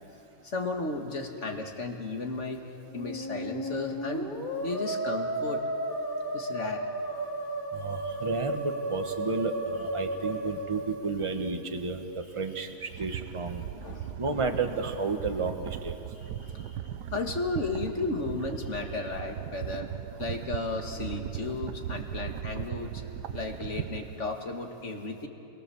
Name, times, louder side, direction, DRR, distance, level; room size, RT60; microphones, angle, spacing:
voice 1, 0.4-2.6 2.9-4.3 4.6-5.6 6.3-6.9 10.1-10.2 13.8-14.2 16.2-16.8 17.1-19.9 20.2-23.0 23.3-25.3, left 3 dB, 45° left, 3 dB, 2.1 m, -34 dB
Musical instrument, 2.9-11.6, right 1 dB, 15° left, 2.8 m, -34 dB
voice 2, 7.7-13.6 14.2-16.0, right 3 dB, 20° right, 5 dB, 1.2 m, -32 dB
sound 1, 12.8-24.4, right 10 dB, 80° right, 1.4 m, -38 dB
28.5 x 22.0 x 7.1 m, 2.9 s
omnidirectional pair, 1.8 m